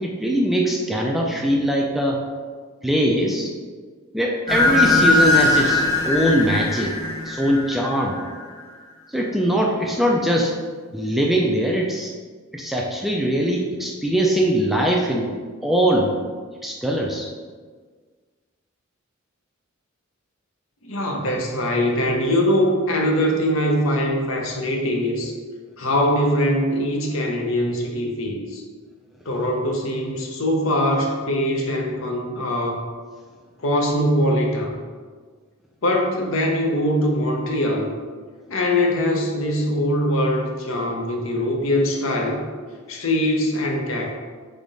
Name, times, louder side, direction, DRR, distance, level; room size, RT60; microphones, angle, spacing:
voice 1, 0.0-2.2 2.8-3.5 4.1-6.9 7.3-8.2 9.1-10.5 10.9-12.1 12.5-15.3 15.6-16.1 16.6-17.3, equal, ahead, -1 dB, 0.3 m, -21 dB
sound 1, 4.5-8.4, left 2 dB, 15° left, 0.7 m, -20 dB
voice 2, 20.8-25.3 25.8-28.6 29.2-32.9 33.6-34.8 35.8-37.9 38.5-42.4 42.9-44.1, left 1 dB, 70° left, 1 dB, 0.7 m, -22 dB
3.5 x 3.5 x 4.0 m, 1.5 s
head